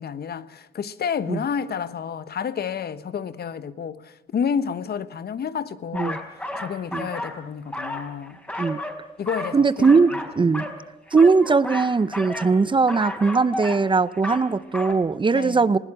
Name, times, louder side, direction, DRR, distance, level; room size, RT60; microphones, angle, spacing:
voice 1, 0.0-6.3 6.6-8.4 9.2-10.0 10.4-10.7 15.3-15.7, left 7 dB, 55° left, 1.2 m, -30 dB
sound 1, 5.9-7.4 7.7-9.0 9.3-10.8 11.1-12.6 12.9-13.9 14.1-14.5 14.7-14.9, left 1 dB, 5° left, 4.5 m, -32 dB
voice 2, 9.5-10.6 11.1-15.8, right 4 dB, 25° right, 0.7 m, -20 dB
20.5 x 16.5 x 8.9 m
cardioid pair, 90°, 20 cm